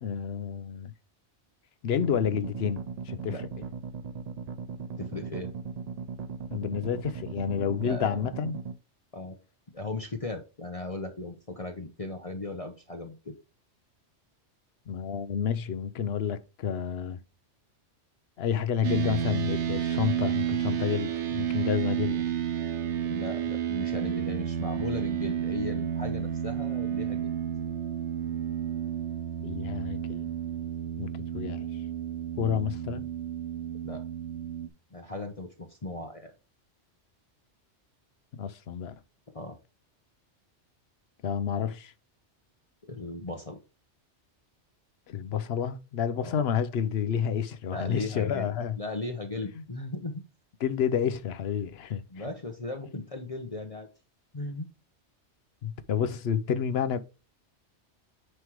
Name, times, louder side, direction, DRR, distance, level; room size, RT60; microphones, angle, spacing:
voice 1, 0.0-0.9 1.8-3.4 6.5-8.6 14.9-17.2 18.4-22.2 29.4-30.3 31.0-31.7 32.4-33.1 38.3-38.9 41.2-41.9 45.1-48.8 50.6-52.2 55.6-57.0, left 8 dB, 65° left, 0.9 m, -30 dB
sound 1, 2.0-8.8, right 5 dB, 50° right, 0.5 m, -38 dB
voice 2, 3.3-3.7 5.0-5.5 7.8-8.2 9.1-9.4 9.7-13.4 22.1-22.2 23.0-27.3 33.8-34.0 34.9-36.3 39.3-39.6 42.9-43.6 46.2-46.4 47.6-50.2 52.1-53.9 54.3-54.7, left 2 dB, 35° left, 0.9 m, -37 dB
sound 2, 18.8-34.7, right 9 dB, 80° right, 1.2 m, -31 dB
9.5 x 3.3 x 4.7 m
omnidirectional pair, 1.2 m